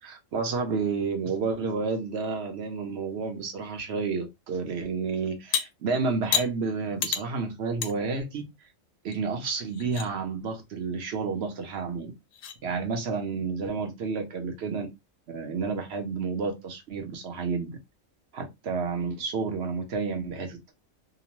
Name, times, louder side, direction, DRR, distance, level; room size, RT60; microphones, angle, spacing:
voice 1, 0.0-8.4 9.0-12.1 12.6-14.9 15.3-17.8 18.3-20.7, right 4 dB, 60° right, 0.8 m, -30 dB
sound 1, 5.5-5.6 6.3-6.5 7.0-7.2 7.8-7.9 8.4-8.5 9.1-9.2 9.6-10.1 11.7-11.8 12.3-12.6, left 8 dB, 85° left, 1.0 m, -28 dB
2.9 x 2.0 x 2.9 m
omnidirectional pair, 1.4 m